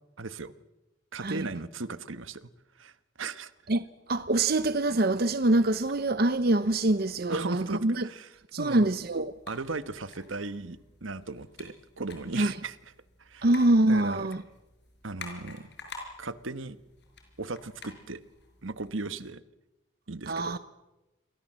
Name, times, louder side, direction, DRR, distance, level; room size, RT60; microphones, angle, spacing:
voice 1, 0.2-0.5 1.1-2.4 2.8-3.5 7.3-8.9 9.5-12.8 13.2-13.5 13.8-14.3 15.0-15.7 16.2-16.8 17.4-18.2 18.6-19.4 20.1-20.6, right 3 dB, 75° right, 1.3 m, -37 dB
voice 2, 4.1-8.0 8.5-9.3 12.4-12.5 13.4-14.4 20.3-20.6, right 2 dB, 50° right, 0.8 m, -25 dB
sound 1, 8.9-18.9, left 4 dB, 60° left, 5.5 m, -50 dB
28.5 x 23.0 x 7.5 m
head